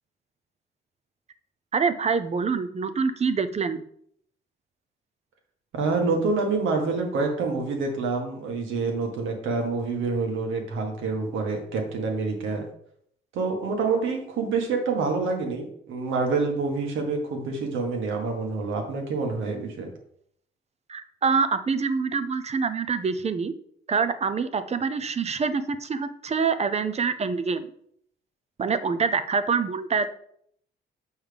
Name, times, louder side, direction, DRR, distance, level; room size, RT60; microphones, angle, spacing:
voice 1, 1.7-3.8 20.9-23.5 23.9-27.7 28.6-30.1, right 5 dB, 35° right, 11 dB, 0.6 m, -25 dB
voice 2, 5.7-12.7 13.3-19.9, right 4 dB, 80° right, 2 dB, 1.6 m, -27 dB
7.3 x 5.5 x 3.4 m, 0.67 s
cardioid pair, 90°, 20 cm